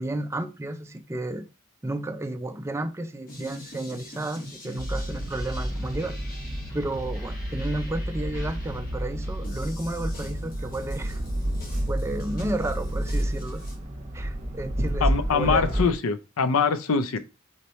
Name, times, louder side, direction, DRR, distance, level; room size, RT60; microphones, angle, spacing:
voice 1, 0.0-1.5 1.8-6.2 6.7-11.2 11.9-13.6 14.1-15.7, right 1 dB, 10° right, 0.3 m, -32 dB
sound 1, 3.3-13.7, left 1 dB, 40° left, 1.1 m, -44 dB
sound 2, 4.8-15.9, right 1 dB, 35° right, 0.8 m, -30 dB
voice 2, 15.0-17.2, left 5 dB, 80° left, 0.5 m, -23 dB
4.3 x 3.1 x 4.0 m
head